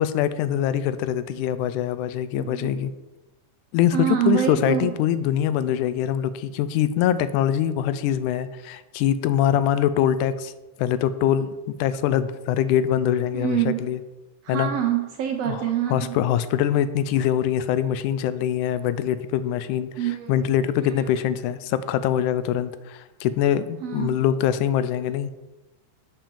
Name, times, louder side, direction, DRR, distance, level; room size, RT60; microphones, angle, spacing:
voice 1, 0.0-2.9 3.7-10.5 10.8-11.5 11.8-14.0 14.5-14.7 15.4-15.6 15.9-19.9 20.3-25.3, left 10 dB, 85° left, 14 dB, 2.0 m, -23 dB
voice 2, 2.4-2.8 3.9-4.9 13.3-13.9 14.4-16.2 20.0-20.4 20.8-21.0 23.8-24.2, right 11 dB, 75° right, 4 dB, 1.5 m, -26 dB
7.2 x 5.8 x 6.8 m, 1.1 s
omnidirectional pair, 3.5 m